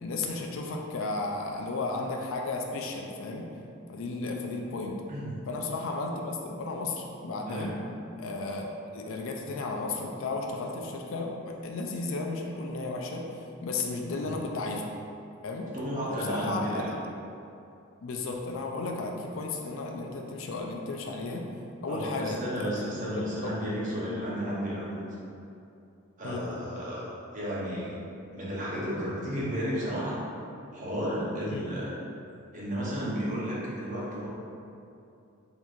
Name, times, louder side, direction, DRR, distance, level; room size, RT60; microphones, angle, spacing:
voice 1, 0.0-3.5 3.9-5.0 5.5-7.7 8.2-8.6 8.9-11.4 11.6-14.9 15.4-15.7 16.1-16.9 18.0-21.5 21.8-22.7 23.2-23.5 24.1-24.3 26.2-26.4 31.5-31.6, left 3 dB, 65° left, 1 dB, 0.4 m, -34 dB
voice 2, 15.7-16.9 21.9-25.2 26.2-28.0 28.3-30.2 30.7-31.9 32.5-34.3, equal, 40° right, -7 dB, 0.8 m, -33 dB
4.3 x 2.8 x 2.4 m, 2.7 s
head